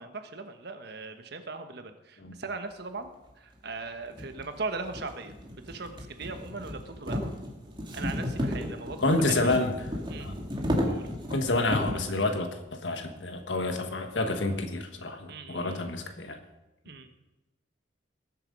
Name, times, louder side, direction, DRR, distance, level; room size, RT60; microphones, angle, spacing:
voice 1, 0.0-3.1 3.4-5.3 5.7-7.3 7.9-9.5 10.1-10.3 10.8-11.1 15.3-15.8 16.8-17.1, right 3 dB, 65° right, 7 dB, 1.3 m, -39 dB
sound 1, 3.3-3.4 4.1-12.1, equal, 25° right, 2.2 m, -33 dB
voice 2, 9.0-9.7 10.2-10.4 11.3-16.4, left 2 dB, 85° left, 7 dB, 1.5 m, -28 dB
19.5 x 7.8 x 5.3 m, 1.0 s
head